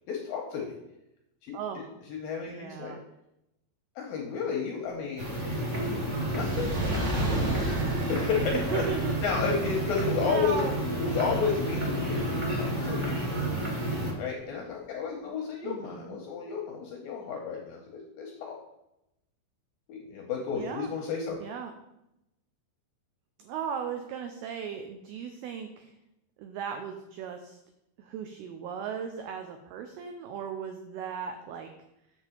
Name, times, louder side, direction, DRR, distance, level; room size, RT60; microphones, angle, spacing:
voice 1, 0.1-0.7 1.4-1.6 2.1-2.9 4.0-5.4 6.3-6.7 7.4-7.6 8.1-8.8 9.2-10.6 11.0-13.1 14.2-18.5 19.9-21.4, left 6 dB, 80° left, 0 dB, 2.1 m, -32 dB
voice 2, 1.5-1.9 2.5-3.0 8.5-9.2 10.2-10.7 15.6-16.2 20.5-20.9 21.4-21.7 23.4-25.9 26.4-27.6 28.0-31.7, right 7 dB, 85° right, 5 dB, 2.2 m, -36 dB
sound 1, 5.2-14.1, right 1 dB, 30° right, 1.2 m, -30 dB
Fire, 6.2-12.6 13.3-13.4, equal, 70° right, 1.0 m, -34 dB
7.3 x 6.8 x 4.4 m, 0.87 s
omnidirectional pair, 5.2 m